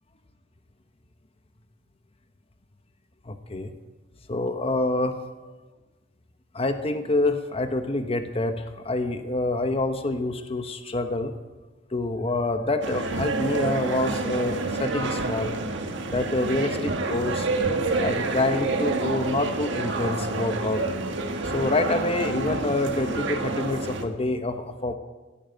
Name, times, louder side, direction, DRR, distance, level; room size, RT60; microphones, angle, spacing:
voice 1, 3.3-3.7 4.3-5.2 6.5-11.3 11.9-15.6 16.1-17.5 18.0-20.8 21.4-24.9, left 2 dB, 30° left, 8 dB, 0.9 m, -27 dB
sound 1, 12.8-24.0, right 3 dB, 65° right, 1.8 m, -28 dB
16.0 x 9.4 x 9.1 m, 1.2 s
head